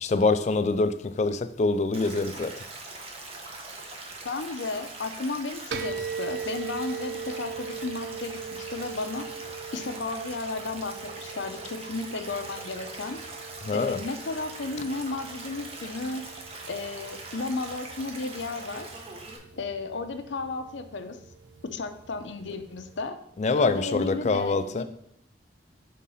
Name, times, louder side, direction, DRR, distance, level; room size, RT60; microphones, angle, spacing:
voice 1, 0.0-2.5 13.6-14.0 23.4-24.8, left 3 dB, 40° left, 0.4 m, -25 dB
Stream, 1.9-19.4, right 2 dB, 35° right, 1.0 m, -42 dB
voice 2, 4.2-9.3 9.7-13.2 13.7-16.2 16.7-19.0 19.6-21.2 21.7-23.2 23.6-24.8, left 3 dB, 80° left, 0.6 m, -34 dB
sound 1, 5.7-23.1, right 6 dB, 70° right, 0.6 m, -41 dB
5.5 x 3.7 x 5.5 m
head